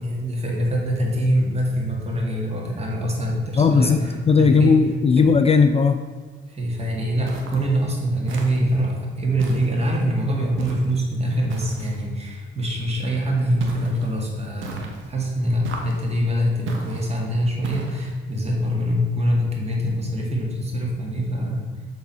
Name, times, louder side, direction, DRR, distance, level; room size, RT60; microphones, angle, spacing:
voice 1, 0.0-4.8 5.2-5.3 6.5-21.7, equal, 30° right, -2 dB, 2.1 m, -24 dB
voice 2, 3.6-4.0 4.3-6.0, left 5 dB, 30° left, 7 dB, 0.4 m, -16 dB
sound 1, 7.3-7.7 8.3-8.8 9.4-10.0 10.6-11.0 11.5-12.1 13.6-14.1 14.6-15.1 15.6-16.1 16.7-17.1 17.6-18.1, right 4 dB, 80° right, 1.1 m, -35 dB
7.4 x 3.8 x 5.5 m, 1.5 s
cardioid pair, 90°, 20 cm